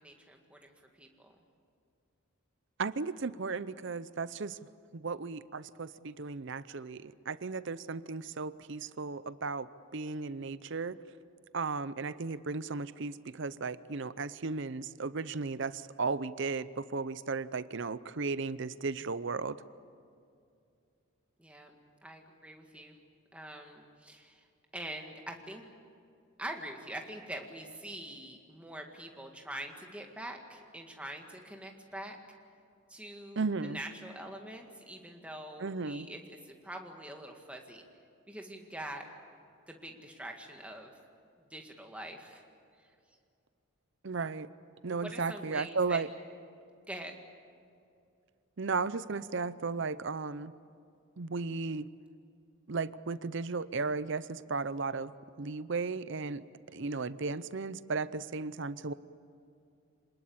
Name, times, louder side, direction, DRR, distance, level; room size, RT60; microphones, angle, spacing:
voice 1, 0.0-1.4 21.4-21.8 22.0-23.0 23.3-24.5 24.7-25.6 26.4-32.2 32.9-37.8 38.3-39.1 39.7-40.9 41.5-42.4 42.8-42.9 44.9-46.1 46.9-47.1 56.7-56.8, right 1 dB, 5° right, 2 dB, 2.0 m, -44 dB
voice 2, 2.8-4.6 4.9-9.7 9.9-11.0 11.5-19.6 33.4-33.8 35.6-36.1 44.0-44.5 44.8-46.1 48.6-50.5 51.2-51.9 52.7-55.1 55.4-56.4 56.7-58.9, right 4 dB, 55° right, 15 dB, 0.6 m, -35 dB
26.5 x 20.0 x 8.7 m, 2.4 s
head